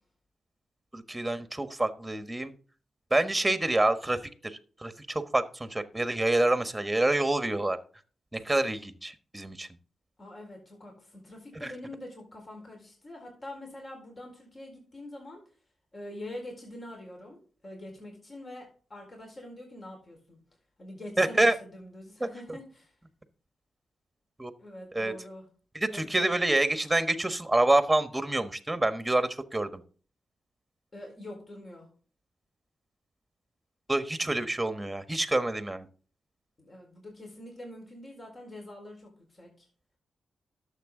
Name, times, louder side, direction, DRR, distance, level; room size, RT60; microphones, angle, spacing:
voice 1, 0.9-2.5 3.1-7.8 8.3-9.7 11.6-11.7 21.2-21.5 22.2-22.3 24.4-24.5 24.9-25.1 25.7-29.8 33.9-35.9, right 2 dB, 15° right, 10 dB, 1.3 m, -27 dB
voice 2, 10.2-15.4 15.9-20.4 20.8-22.9 24.6-25.5 25.9-26.8 30.9-31.9 36.6-39.7, left 1 dB, 40° left, 1 dB, 4.2 m, -45 dB
11.5 x 7.3 x 3.8 m, 0.41 s
cardioid pair, 60°, 0 cm